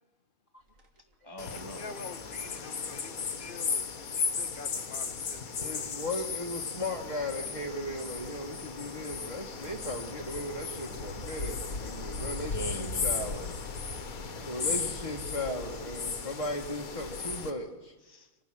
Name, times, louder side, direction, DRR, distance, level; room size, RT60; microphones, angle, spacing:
sound 1, 0.6-1.2 1.4-1.8 2.2-16.5, equal, 65° right, 2.7 m, -52 dB
voice 1, 1.2-1.8 12.2-13.5 14.0-15.1 18.0-18.4, right 1 dB, 20° right, 6 dB, 0.9 m, -44 dB
sound 2, 1.4-17.5, left 5 dB, 75° left, 1.9 m, -36 dB
voice 2, 1.8-3.9 4.2-5.9, left 4 dB, 40° left, 10 dB, 1.1 m, -47 dB
voice 3, 5.6-13.5 14.5-17.9, left 1 dB, 25° left, -2 dB, 1.6 m, -37 dB
26.0 x 18.5 x 6.1 m, 1.1 s
omnidirectional pair, 1.5 m